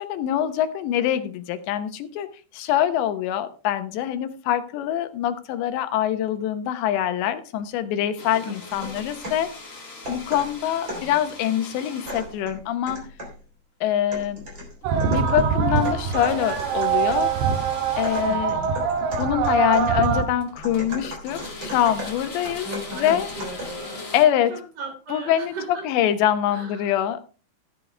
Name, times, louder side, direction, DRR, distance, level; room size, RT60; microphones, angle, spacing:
voice 1, 0.0-2.3 2.5-9.5 10.1-13.1 13.8-14.5 15.1-17.3 18.0-18.6 19.2-22.7 22.9-23.3 24.1-24.5 25.1-25.5 25.8-27.3, left 11 dB, 75° left, 3.1 m, -24 dB
sound 1, 8.2-12.5 14.8-15.3 15.8-18.4 19.5-19.6 20.2-21.0 21.2-24.2, left 3 dB, 30° left, 1.4 m, -40 dB
voice 2, 8.4-8.9 10.9-11.2 18.3-18.7 22.6-24.1 24.5-25.9 26.5-26.9, right 1 dB, 45° right, 5.2 m, -37 dB
sound 2, 8.7-9.5 10.0-11.2 12.1-13.4 14.1-17.4 18.0-23.9, equal, 25° right, 3.7 m, -37 dB
sound 3, 14.8-20.2, right 7 dB, 75° right, 3.5 m, -23 dB
14.0 x 9.6 x 3.3 m
omnidirectional pair, 5.3 m